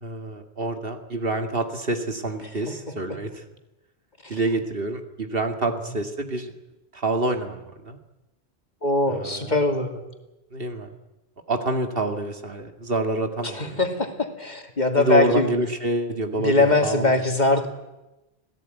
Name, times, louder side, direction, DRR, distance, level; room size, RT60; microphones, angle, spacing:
voice 1, 0.0-3.3 4.3-6.5 6.9-8.0 9.1-9.5 10.5-10.9 11.5-13.8 15.0-17.1, right 2 dB, 60° right, 6 dB, 2.2 m, -27 dB
voice 2, 2.4-3.2 4.2-4.4 5.6-5.8 8.8-10.0 13.4-15.5 16.4-17.7, left 2 dB, 40° left, 5 dB, 2.6 m, -22 dB
26.0 x 17.5 x 9.2 m, 1.0 s
omnidirectional pair, 1.1 m